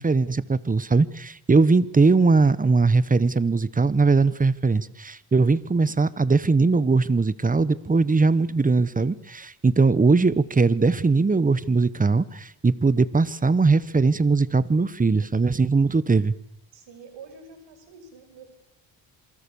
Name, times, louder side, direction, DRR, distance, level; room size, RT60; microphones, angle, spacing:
voice 1, 0.0-16.3, right 4 dB, 20° right, 17 dB, 1.0 m, -20 dB
voice 2, 16.7-18.6, right 4 dB, 80° right, 8 dB, 5.9 m, -46 dB
27.5 x 23.0 x 7.0 m, 0.76 s
cardioid pair, 90°, 43 cm